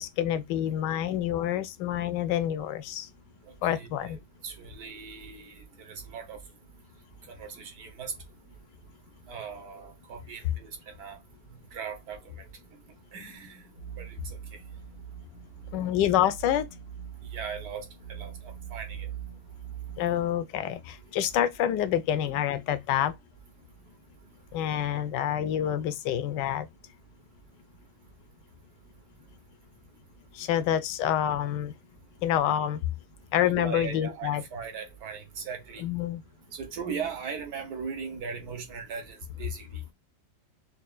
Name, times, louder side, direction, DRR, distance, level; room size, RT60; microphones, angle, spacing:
voice 1, 0.0-3.0 3.6-4.2 15.7-16.7 20.0-20.8 21.1-23.1 24.5-26.7 30.4-31.7 32.2-32.8 33.3-34.4 35.8-36.2, left 11 dB, 75° left, 1.2 m, -27 dB
voice 2, 3.7-6.4 7.3-8.1 9.3-10.7 11.0-11.2 11.7-12.2 13.1-13.6 14.0-14.4 17.3-19.1 33.4-35.8 36.5-39.9, right 6 dB, 60° right, 1.3 m, -39 dB
sound 1, 13.8-20.2, right 9 dB, 80° right, 2.3 m, -42 dB
5.4 x 2.3 x 2.3 m
omnidirectional pair, 2.0 m